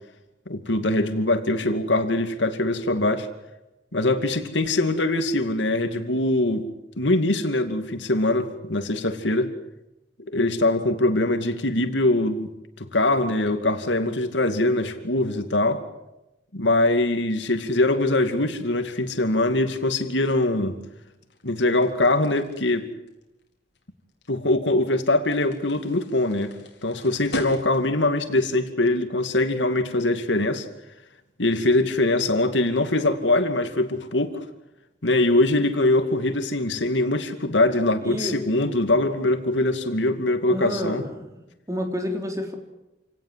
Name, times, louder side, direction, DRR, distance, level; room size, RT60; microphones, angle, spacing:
voice 1, 0.5-3.3 3.9-6.7 7.0-9.5 10.2-12.5 12.8-15.8 16.5-20.8 21.4-22.9 24.3-26.6 26.8-30.7 31.4-34.4 35.0-41.0, left 2 dB, 90° left, 8 dB, 2.5 m, -22 dB
sound 1, 17.7-28.1, left 1 dB, 65° left, 4.5 m, -42 dB
voice 2, 38.0-38.4 40.5-41.4 41.7-42.5, equal, 20° right, 4 dB, 3.7 m, -29 dB
28.0 x 18.5 x 7.6 m, 0.94 s
head